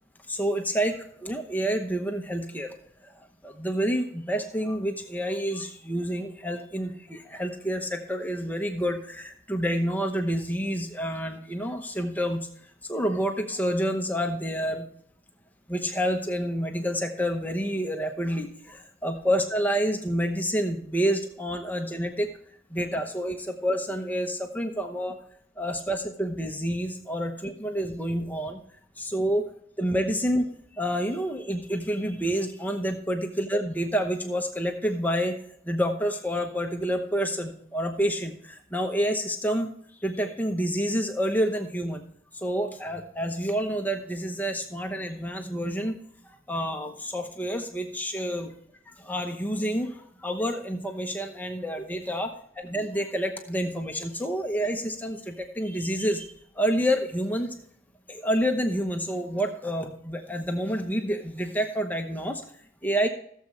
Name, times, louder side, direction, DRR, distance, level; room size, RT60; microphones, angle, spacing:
voice 1, 0.3-2.7 3.0-14.9 15.7-22.3 22.7-25.2 25.6-28.6 29.0-29.5 29.8-30.5 30.7-35.4 35.6-39.7 40.0-42.0 42.3-46.0 46.2-48.5 48.9-56.3 56.5-57.5 58.1-62.4 62.8-63.1, equal, 10° left, 4 dB, 0.9 m, -28 dB
16.5 x 7.4 x 3.3 m, 0.65 s
head